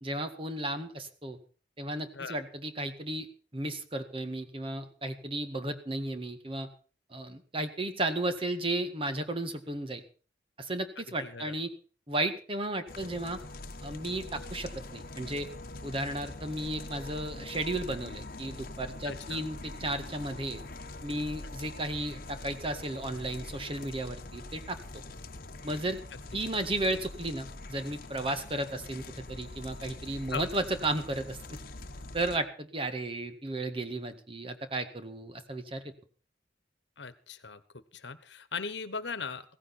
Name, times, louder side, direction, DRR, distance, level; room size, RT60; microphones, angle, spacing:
voice 1, 0.0-1.4 1.8-3.3 3.5-6.7 7.1-10.0 10.6-11.7 12.1-13.4 13.8-15.5 15.8-20.6 21.0-25.0 25.6-26.0 26.3-31.6 32.1-35.9, right 1 dB, 30° right, 8 dB, 1.8 m, -34 dB
voice 2, 11.2-11.5 19.0-19.4 26.1-26.4 30.3-30.5 37.0-37.6 37.9-39.6, left 5 dB, 75° left, 15 dB, 1.3 m, -39 dB
sound 1, 12.9-32.4, left 2 dB, 55° left, 1.2 m, -44 dB
16.5 x 15.0 x 4.3 m, 0.39 s
head